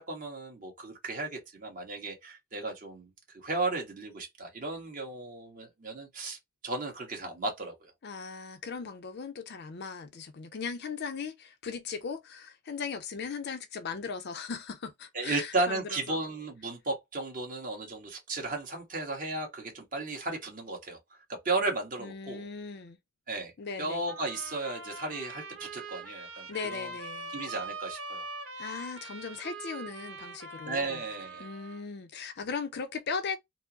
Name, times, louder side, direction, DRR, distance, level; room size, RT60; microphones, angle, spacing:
voice 1, 0.0-6.4 6.6-7.9 15.1-21.0 21.4-22.5 23.3-23.5 23.8-26.9 27.3-28.3 30.6-31.4, right 2 dB, 45° right, 1.4 m, -34 dB
voice 2, 8.0-16.2 22.0-23.0 23.6-24.1 26.5-27.4 28.6-31.0 31.4-33.4, left 5 dB, 55° left, 0.5 m, -38 dB
sound 1, 24.1-31.9, right 2 dB, 65° right, 1.6 m, -42 dB
4.3 x 2.0 x 2.8 m
head